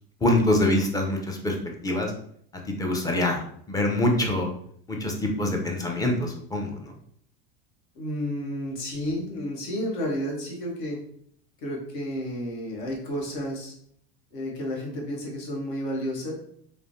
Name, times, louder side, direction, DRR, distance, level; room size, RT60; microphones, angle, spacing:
voice 1, 0.2-1.6 1.8-2.1 2.8-4.5 4.9-6.9, left 1 dB, 10° left, 1 dB, 0.5 m, -25 dB
voice 2, 7.9-11.0 11.6-13.7 14.3-16.3, equal, 70° left, -1 dB, 1.1 m, -31 dB
3.1 x 2.1 x 2.6 m, 0.65 s
supercardioid pair, 115°, 31 cm